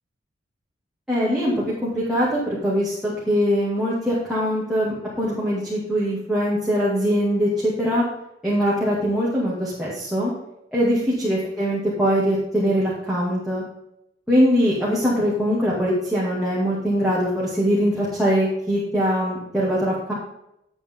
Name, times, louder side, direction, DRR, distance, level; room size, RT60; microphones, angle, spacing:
voice 1, 1.1-8.0 8.4-10.3 10.7-13.6 14.3-20.1, equal, ahead, -8 dB, 2.4 m, -22 dB
11.0 x 8.2 x 3.8 m, 0.82 s
head